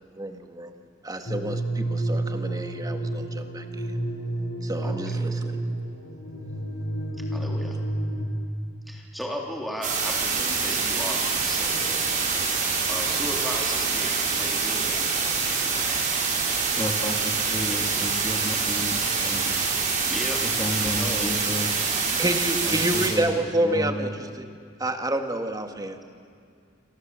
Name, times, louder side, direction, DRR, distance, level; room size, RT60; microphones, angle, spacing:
voice 1, 0.2-0.7 1.0-3.9 4.6-5.8 22.2-24.5 24.8-26.0, right 1 dB, 20° right, 6 dB, 1.9 m, -29 dB
sound 1, 1.3-8.3, right 1 dB, 65° left, 7.2 m, -30 dB
voice 2, 4.8-5.3 7.3-7.8 8.9-12.2 12.9-15.0 20.0-20.4 20.8-21.3, equal, ahead, -1 dB, 3.4 m, -36 dB
sound 2, 9.8-23.1, right 5 dB, 45° right, 5.9 m, -25 dB
voice 3, 16.7-19.7 20.4-21.7 22.6-24.1, left 1 dB, 20° left, 3 dB, 2.7 m, -32 dB
29.5 x 25.0 x 7.7 m, 2.2 s
head